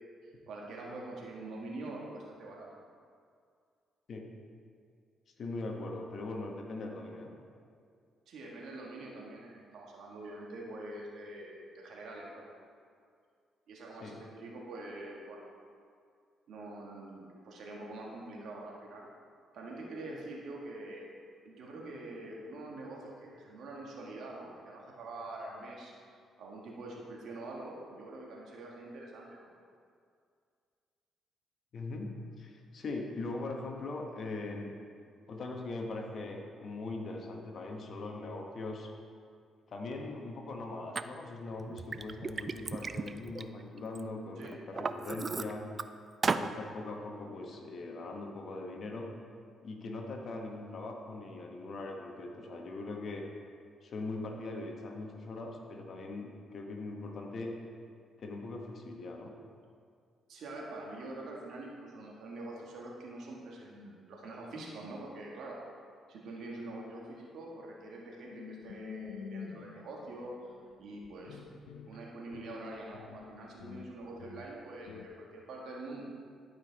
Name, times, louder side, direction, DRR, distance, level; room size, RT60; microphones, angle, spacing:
voice 1, 0.2-2.7 8.3-12.4 13.7-15.4 16.5-19.1 19.5-21.1 21.4-25.9 26.4-29.5 44.4-44.5 60.3-65.6 66.1-70.3 70.8-71.4 71.9-76.0, right 2 dB, 70° right, -2 dB, 1.7 m, -45 dB
voice 2, 5.4-7.3 14.0-14.2 31.7-34.7 35.2-38.9 39.7-45.7 46.2-49.1 49.6-53.3 53.8-57.5 58.2-59.3, left 2 dB, 55° left, 2 dB, 1.2 m, -41 dB
Liquid, 41.0-41.1 41.6-44.0 44.4-45.8 46.2-46.5, right 4 dB, 35° right, 0.3 m, -35 dB
sound 1, 68.3-75.1, left 6 dB, 90° left, 0.5 m, -48 dB
11.5 x 5.3 x 4.1 m, 2.2 s
cardioid pair, 90°, 0 cm